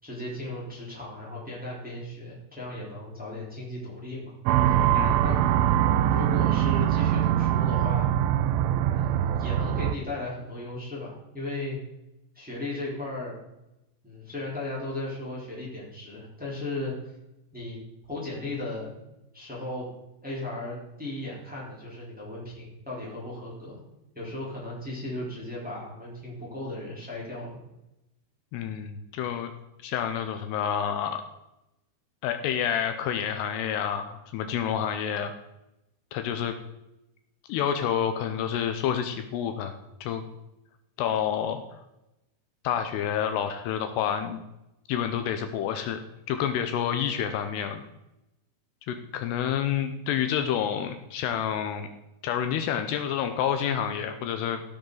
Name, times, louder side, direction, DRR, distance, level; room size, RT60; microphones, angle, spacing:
voice 1, 0.0-4.3 4.7-4.8 5.2-5.5 6.1-8.1 8.9-11.8 12.3-13.4 14.0-16.9 17.5-17.8 18.1-18.9 19.3-19.9 20.2-23.8 24.1-27.6, left 2 dB, ahead, -6 dB, 2.9 m, -36 dB
sound 1, 4.5-10.0, right 11 dB, 90° right, 2.1 m, -23 dB
voice 2, 28.5-29.5 29.8-31.2 32.2-35.3 36.1-36.5 37.5-39.7 40.0-40.2 41.0-41.6 42.6-44.4 44.9-46.0 46.3-47.8 48.9-51.9 52.2-54.6, left 9 dB, 80° left, 7 dB, 2.7 m, -28 dB
15.5 x 6.5 x 3.9 m, 0.92 s
omnidirectional pair, 5.0 m